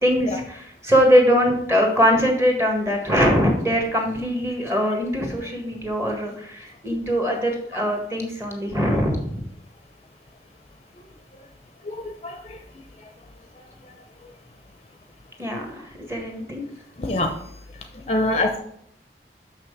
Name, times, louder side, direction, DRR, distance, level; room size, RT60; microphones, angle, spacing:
voice 1, 0.0-9.4 15.4-16.6, equal, 15° right, 2 dB, 1.7 m, -22 dB
voice 2, 18.1-18.6, left 2 dB, 35° left, 5 dB, 0.7 m, -22 dB
6.3 x 6.1 x 6.6 m, 0.70 s
head